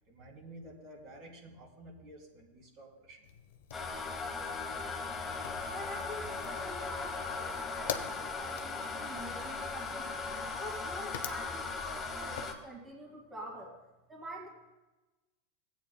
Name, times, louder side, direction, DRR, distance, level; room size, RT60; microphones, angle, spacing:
voice 1, 0.1-3.3 5.6-5.7, right 1 dB, 55° right, -2 dB, 2.8 m, -51 dB
Fire, 3.2-12.6, left 9 dB, 75° left, 0.7 m, -47 dB
sound 1, 3.7-12.5, left 4 dB, 20° left, 1.6 m, -38 dB
voice 2, 5.6-10.2 10.6-13.7 14.1-14.5, right 1 dB, 15° right, -3 dB, 2.0 m, -46 dB
16.0 x 8.4 x 2.2 m, 1.1 s
hypercardioid pair, 110°, 0 cm